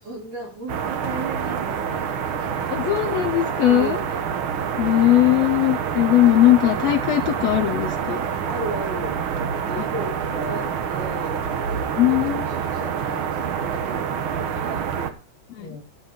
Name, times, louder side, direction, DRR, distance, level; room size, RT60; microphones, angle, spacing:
voice 1, 0.0-2.1 2.4-2.5 3.6-4.1 8.3-9.2 9.7-10.1 10.4-14.9 15.6-15.8, right 1 dB, 50° right, -4 dB, 6.0 m, -35 dB
sound 1, 0.7-15.1, right 7 dB, 85° right, 1.1 m, -27 dB
voice 2, 2.7-4.0 4.8-8.2 12.0-12.3 15.6-15.7, left 14 dB, 85° left, 7 dB, 1.4 m, -19 dB
12.0 x 7.1 x 5.1 m, 0.35 s
omnidirectional pair, 3.8 m